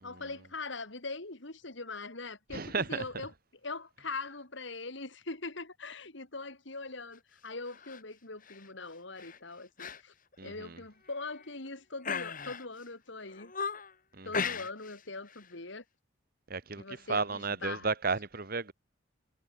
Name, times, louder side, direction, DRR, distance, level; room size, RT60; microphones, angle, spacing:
voice 1, 0.0-3.3 3.6-10.1 10.4-13.5 14.2-15.8 16.8-17.9, left 3 dB, 65° left, 2.6 m, -42 dB
voice 2, 2.5-3.0 10.4-10.8 14.1-14.6 16.5-18.7, right 4 dB, 45° right, 1.6 m, -34 dB
sound 1, 7.7-8.0 8.4-8.7 9.2-9.4 9.8-10.0 10.3-10.4 11.1-11.6 12.0-12.8 13.3-13.9 14.3-15.0 15.3-15.5, left 5 dB, 40° left, 3.7 m, -37 dB
head